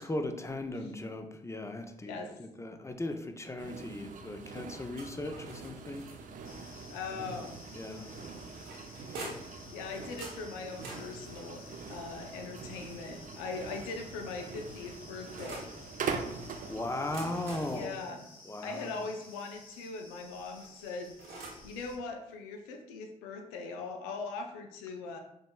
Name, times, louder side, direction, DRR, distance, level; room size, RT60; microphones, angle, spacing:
voice 1, 0.0-6.1 7.1-7.3 7.7-8.1 9.1-9.2 16.7-17.9 18.5-19.1, left 2 dB, 15° left, 6 dB, 0.6 m, -38 dB
voice 2, 2.0-2.4 3.6-4.0 6.9-7.6 9.7-11.6 11.9-15.7 17.7-18.3 18.6-25.2, left 4 dB, 85° left, 4 dB, 0.4 m, -41 dB
sound 1, 3.6-17.9, right 5 dB, 50° right, 0.5 m, -43 dB
sound 2, 4.9-6.5 7.8-9.6 10.2-13.1 13.9-15.8 16.9-19.4 20.5-21.7, right 2 dB, 75° right, 1.0 m, -48 dB
sound 3, 6.4-21.9, left 3 dB, 60° left, 0.9 m, -54 dB
5.1 x 3.1 x 2.3 m, 0.80 s
hypercardioid pair, 40°, 17 cm